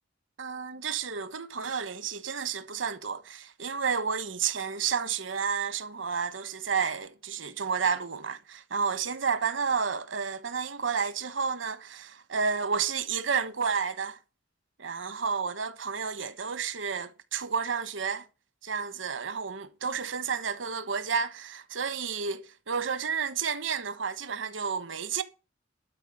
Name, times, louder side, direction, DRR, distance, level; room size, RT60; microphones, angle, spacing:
voice 1, 0.4-14.2 14.8-18.2 18.6-25.2, right 6 dB, 70° right, 1.3 m, -31 dB
12.5 x 4.7 x 8.5 m
head